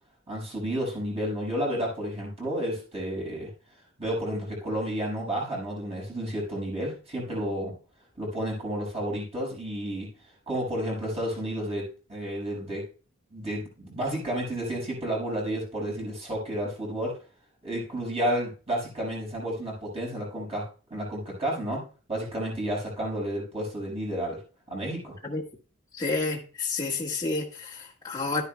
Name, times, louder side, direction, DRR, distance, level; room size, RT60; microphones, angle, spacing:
voice 1, 0.3-3.5 4.0-7.7 8.2-10.1 10.5-12.8 13.3-17.2 17.6-24.4 24.7-25.2, equal, 30° right, -4 dB, 5.7 m, -31 dB
voice 2, 25.9-28.4, left 3 dB, 20° left, -4 dB, 1.5 m, -30 dB
12.0 x 9.8 x 2.2 m, 0.36 s
head